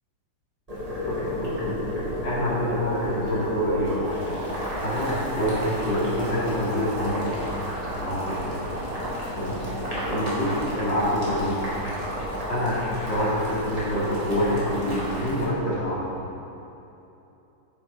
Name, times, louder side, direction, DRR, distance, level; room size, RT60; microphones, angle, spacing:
Boiling, 0.7-15.5, equal, 20° right, 2.8 m, -31 dB
voice 1, 1.1-1.8 2.2-4.1 4.8-7.5 7.9-8.6 9.4-9.6 10.1-11.5 12.5-12.8 13.1-16.0, equal, 70° left, -9 dB, 3.9 m, -26 dB
10.0 x 8.5 x 5.7 m, 2.9 s
omnidirectional pair, 2.1 m